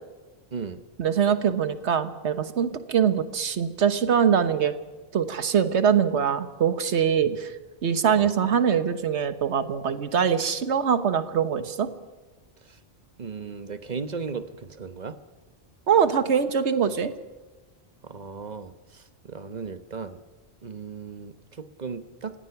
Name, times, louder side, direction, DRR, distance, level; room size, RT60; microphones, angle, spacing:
voice 1, 1.0-4.7 5.1-7.5 7.8-11.9 15.9-17.1, right 7 dB, 85° right, 11 dB, 1.4 m, -23 dB
voice 2, 13.2-15.2 18.0-20.2 20.6-22.4, right 5 dB, 40° right, 11 dB, 1.1 m, -36 dB
29.5 x 16.5 x 5.9 m, 1.3 s
omnidirectional pair, 1.1 m